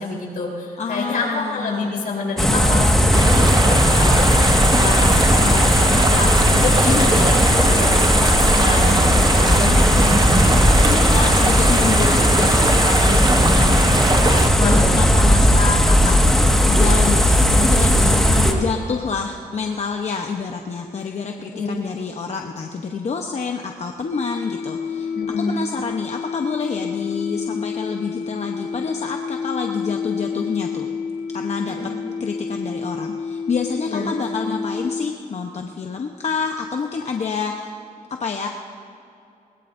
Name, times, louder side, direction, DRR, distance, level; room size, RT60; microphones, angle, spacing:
voice 1, 0.0-9.7 14.6-15.1 18.1-18.5 21.5-21.7 25.1-25.5 31.7-32.0 32.5-32.6 33.8-34.1 34.4-34.5, left 3 dB, 70° left, -2 dB, 3.9 m, -27 dB
voice 2, 0.8-1.9 6.8-7.1 9.4-14.5 14.9-16.2 16.7-18.2 18.5-30.9 31.3-31.7 32.2-37.7 38.2-38.5, left 5 dB, 50° left, 3 dB, 0.9 m, -28 dB
sound 1, 2.4-18.5, equal, 5° left, 1.7 m, -16 dB
sound 2, 3.1-14.5, right 3 dB, 30° right, 0.7 m, -23 dB
sound 3, 24.1-35.1, left 5 dB, 90° left, 1.2 m, -29 dB
21.0 x 21.0 x 2.7 m, 2.7 s
cardioid pair, 105°, 15 cm